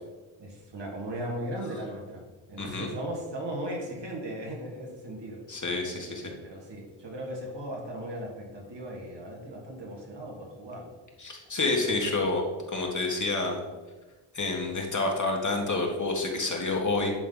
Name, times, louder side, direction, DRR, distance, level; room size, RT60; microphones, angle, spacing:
voice 1, 0.4-2.2 2.5-5.4 5.9-11.0 11.8-12.1, right 1 dB, 55° right, -1 dB, 2.3 m, -37 dB
voice 2, 2.6-2.9 5.5-6.3 11.2-13.6 14.3-17.1, left 2 dB, 35° left, 0 dB, 1.8 m, -28 dB
10.5 x 3.8 x 4.0 m, 1.2 s
supercardioid pair, 50°, 49 cm